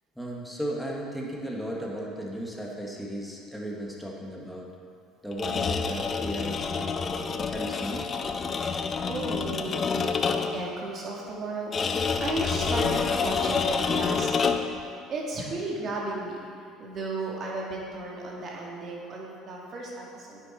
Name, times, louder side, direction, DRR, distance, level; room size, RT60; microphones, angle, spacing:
voice 1, 0.2-4.7 5.2-8.1, equal, ahead, -3 dB, 1.9 m, -35 dB
sound 1, 5.3-10.7 11.7-14.8, left 5 dB, 40° left, 0.6 m, -28 dB
voice 2, 9.1-16.4 16.8-20.4, right 2 dB, 45° right, -3 dB, 2.4 m, -34 dB
9.7 x 7.5 x 4.5 m, 2.3 s
hypercardioid pair, 75°, 0 cm